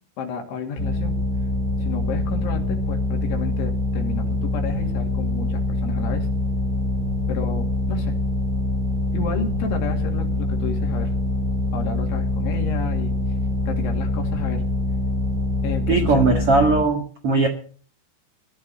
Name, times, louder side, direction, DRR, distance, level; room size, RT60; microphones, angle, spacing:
voice 1, 0.2-1.2 1.8-6.3 7.3-8.2 9.1-11.1 11.7-13.1 13.7-14.7 15.6-16.2 17.4-17.5, left 5 dB, 70° left, 3 dB, 4.8 m, -31 dB
sound 1, 0.8-16.8, left 2 dB, 20° left, 2.6 m, -24 dB
voice 2, 15.9-17.5, right 3 dB, 80° right, 4 dB, 1.3 m, -19 dB
16.5 x 12.5 x 5.6 m, 0.43 s
omnidirectional pair, 5.7 m